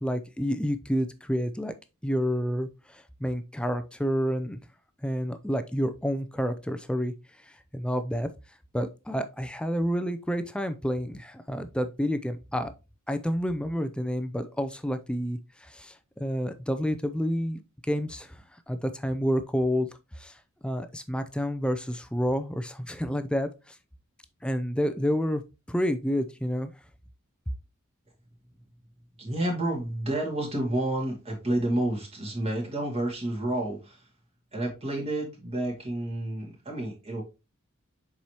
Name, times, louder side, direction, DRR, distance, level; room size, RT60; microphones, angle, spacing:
voice 1, 0.0-1.7 2.0-4.6 5.0-7.1 7.7-8.3 8.7-12.7 13.1-17.6 17.9-18.4 18.7-19.9 20.2-20.4 20.6-23.8 24.4-25.4 25.7-26.7, equal, 5° left, 0.4 m, -29 dB
voice 2, 29.2-34.0 34.5-37.2, right 1 dB, 30° right, 2.2 m, -30 dB
7.0 x 4.8 x 2.9 m
head